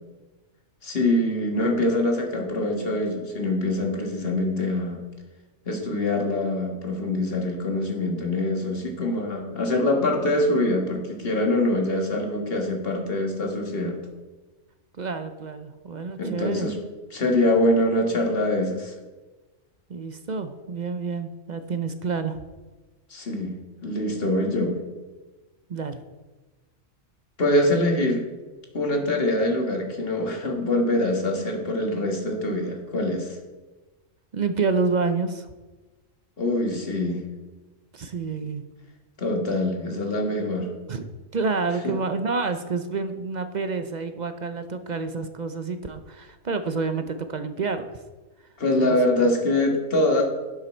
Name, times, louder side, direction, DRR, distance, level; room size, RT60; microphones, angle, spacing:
voice 1, 0.8-5.0 5.7-14.0 16.2-16.8 17.1-18.9 23.1-23.6 23.8-24.8 27.4-28.2 28.7-33.4 36.4-37.2 39.2-40.7 41.8-41.9 48.6-50.2, left 1 dB, 50° left, 2 dB, 1.8 m, -24 dB
voice 2, 15.0-16.7 19.9-22.4 25.7-26.0 34.3-35.5 37.9-38.6 40.9-41.0 41.3-48.0 48.8-49.3, right 4 dB, 45° right, 9 dB, 0.6 m, -28 dB
11.0 x 7.4 x 4.4 m, 1.2 s
omnidirectional pair, 1.3 m